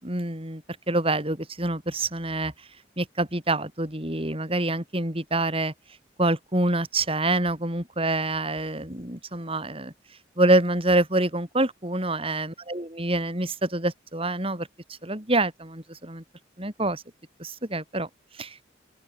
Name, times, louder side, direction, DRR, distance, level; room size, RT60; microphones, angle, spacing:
voice 1, 0.0-2.5 3.0-5.7 6.2-9.9 10.4-14.7 15.0-16.2 16.6-17.0 17.4-18.1 18.4-18.6, right 2 dB, 30° right, 5.5 m, -26 dB
open air
head